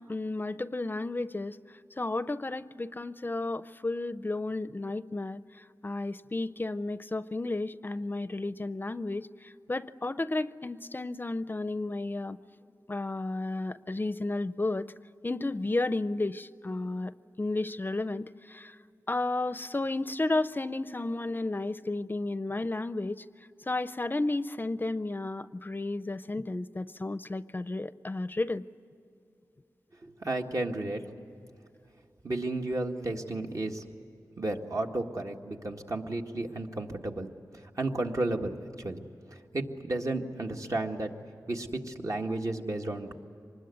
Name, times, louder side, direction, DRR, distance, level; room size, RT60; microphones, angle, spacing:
voice 1, 0.0-1.6 2.0-12.4 12.9-14.9 15.2-17.1 17.4-18.8 19.1-23.2 23.7-28.6, left 2 dB, 30° left, 14 dB, 0.5 m, -32 dB
voice 2, 30.0-31.0 32.2-33.8 34.4-39.0 39.3-41.1 41.5-43.2, right 2 dB, 55° right, 2 dB, 1.8 m, -33 dB
25.0 x 20.5 x 9.4 m, 2.5 s
wide cardioid pair, 95°, 7 cm